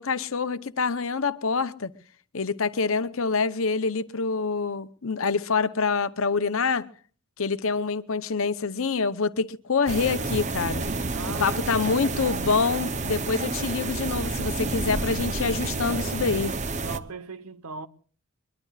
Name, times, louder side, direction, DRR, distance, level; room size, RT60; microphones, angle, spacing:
voice 1, 0.0-1.9 2.3-6.9 7.4-10.8 11.4-16.5, left 4 dB, 70° left, 0.8 m, -26 dB
sound 1, 9.9-17.0, right 3 dB, 30° right, 0.7 m, -29 dB
voice 2, 11.1-12.1 16.8-17.9, right 4 dB, 85° right, 1.1 m, -38 dB
23.0 x 22.5 x 2.4 m
head